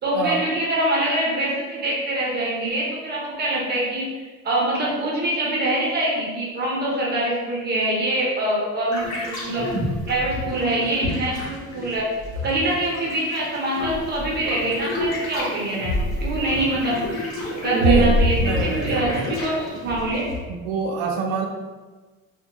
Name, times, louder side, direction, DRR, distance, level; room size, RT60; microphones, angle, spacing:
voice 1, 0.0-9.7 10.1-12.1 12.4-17.0 17.6-20.3, right 1 dB, 30° right, -4 dB, 0.6 m, -24 dB
sound 1, 8.9-20.4, left 1 dB, 55° left, 1.1 m, -27 dB
voice 2, 17.7-19.1 20.5-21.5, right 6 dB, 80° right, 1 dB, 0.5 m, -24 dB
2.6 x 2.1 x 2.8 m, 1.3 s
cardioid pair, 130°, 32 cm